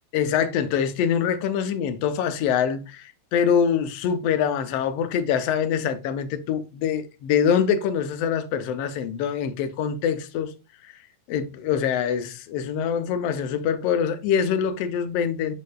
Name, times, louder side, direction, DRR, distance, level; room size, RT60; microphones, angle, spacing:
voice 1, 0.1-10.5 11.3-15.5, left 8 dB, 70° left, 1.6 m, -24 dB
6.9 x 6.6 x 2.3 m
omnidirectional pair, 3.5 m